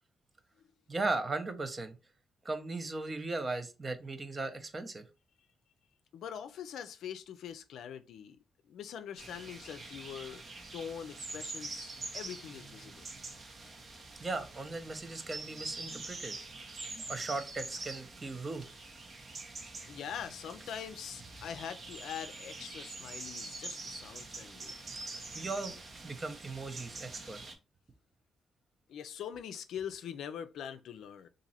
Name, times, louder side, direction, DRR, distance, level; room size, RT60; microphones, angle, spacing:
voice 1, 0.9-2.0 2.4-5.0 14.2-16.4 17.1-18.6 25.0-25.8 26.0-27.4, right 3 dB, 35° right, 0.7 m, -37 dB
voice 2, 6.1-8.4 8.7-10.4 10.7-13.0 19.9-24.7 28.9-31.3, left 8 dB, 80° left, 0.4 m, -43 dB
sound 1, 9.2-27.5, right 3 dB, 55° right, 0.9 m, -45 dB
2.9 x 2.6 x 4.1 m
supercardioid pair, 60°, 0 cm